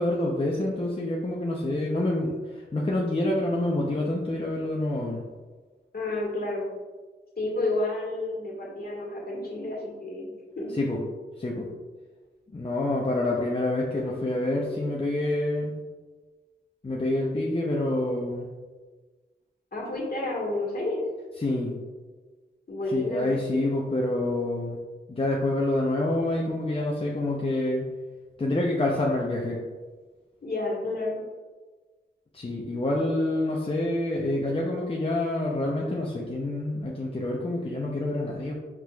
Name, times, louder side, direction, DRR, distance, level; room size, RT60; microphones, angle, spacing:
voice 1, 0.0-5.2 10.7-11.0 11.4-11.7 12.5-15.7 16.8-18.5 21.4-21.7 22.9-24.8 25.1-27.9 28.4-29.6 32.3-38.5, left 1 dB, 30° left, -3 dB, 0.6 m, -27 dB
voice 2, 5.9-6.7 7.4-10.3 10.6-10.7 19.7-21.0 22.7-23.4 30.4-31.2, left 2 dB, 50° left, -4 dB, 1.5 m, -30 dB
5.9 x 3.0 x 2.3 m, 1.3 s
cardioid pair, 55°, 20 cm